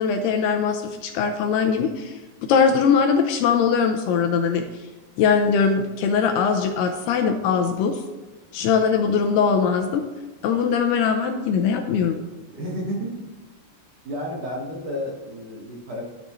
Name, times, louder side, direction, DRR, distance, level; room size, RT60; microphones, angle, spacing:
voice 1, 0.0-2.2 2.5-4.7 5.2-8.0 8.5-10.0 10.4-12.2, left 6 dB, 80° left, 5 dB, 2.5 m, -21 dB
voice 2, 12.5-13.3 14.0-16.0, equal, 55° right, -2 dB, 2.6 m, -31 dB
14.0 x 10.5 x 3.2 m, 1.2 s
omnidirectional pair, 5.1 m